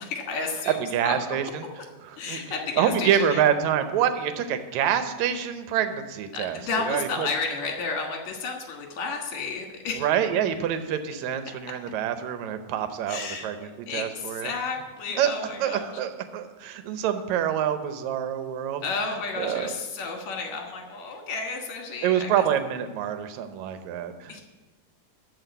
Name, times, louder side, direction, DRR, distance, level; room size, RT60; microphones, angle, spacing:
voice 1, 0.0-0.8 1.0-1.2 2.2-3.4 6.3-10.1 13.1-13.5 13.9-15.8 18.8-22.3 24.3-24.4, left 4 dB, 65° left, 1 dB, 2.8 m, -32 dB
voice 2, 0.7-1.7 2.0-2.4 2.8-7.3 10.0-14.5 15.2-18.8 19.1-19.7 22.0-24.4, right 9 dB, 75° right, 9 dB, 2.0 m, -26 dB
12.5 x 4.7 x 8.0 m, 1.2 s
omnidirectional pair, 3.6 m